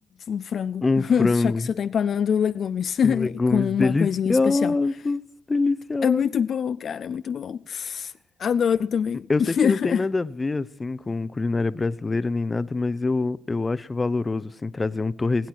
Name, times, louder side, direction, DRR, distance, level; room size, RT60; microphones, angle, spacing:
voice 1, 0.3-4.8 6.0-8.1 8.4-10.0, left 7 dB, 55° left, 0.4 m, -24 dB
voice 2, 0.8-1.7 3.0-5.2 5.5-6.2 9.3-15.5, left 3 dB, 25° left, 0.7 m, -25 dB
21.0 x 9.3 x 4.6 m
cardioid pair, 90°, 0 cm